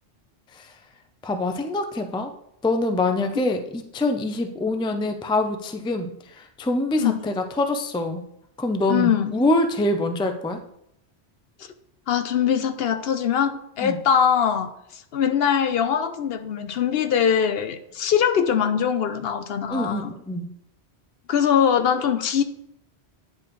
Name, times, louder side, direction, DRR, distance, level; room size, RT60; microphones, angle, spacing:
voice 1, 1.2-2.3 2.6-8.2 8.6-10.6 13.8-14.0 19.7-20.5, left 2 dB, 10° left, 6 dB, 0.3 m, -25 dB
voice 2, 8.9-9.3 12.1-20.1 21.3-22.4, left 8 dB, 70° left, 9 dB, 0.8 m, -22 dB
9.5 x 4.9 x 3.1 m, 0.77 s
omnidirectional pair, 1.1 m